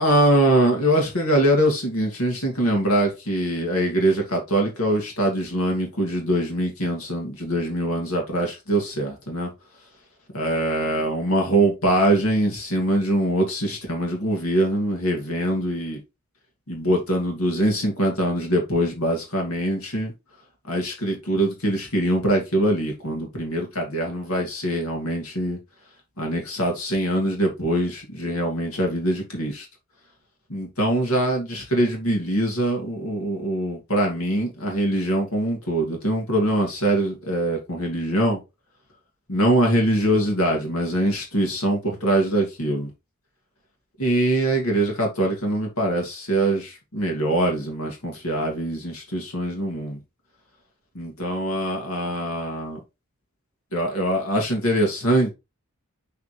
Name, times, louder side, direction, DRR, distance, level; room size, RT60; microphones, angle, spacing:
voice 1, 0.0-9.5 10.3-16.0 16.7-20.1 20.7-25.6 26.2-29.7 30.5-38.4 39.3-42.9 44.0-50.0 50.9-52.8 53.7-55.3, right 1 dB, 80° left, 2.5 m, -23 dB
7.2 x 4.2 x 3.2 m
head